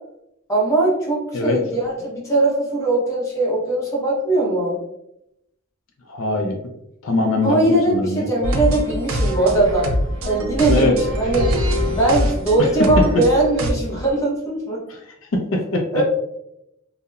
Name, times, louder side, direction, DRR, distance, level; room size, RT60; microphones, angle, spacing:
voice 1, 0.5-4.8 7.4-9.9 10.2-11.5 11.9-14.8 15.9-16.0, right 2 dB, 15° left, -5 dB, 0.8 m, -20 dB
voice 2, 6.1-6.6 7.0-8.3 10.7-10.9 14.9-15.0 15.3-15.8, left 2 dB, 70° left, 3 dB, 0.4 m, -21 dB
sound 1, 8.4-13.7, equal, 80° right, 0.4 m, -24 dB
Wind, 8.8-14.1, equal, 25° right, 0.6 m, -31 dB
2.8 x 2.0 x 2.3 m, 0.81 s
head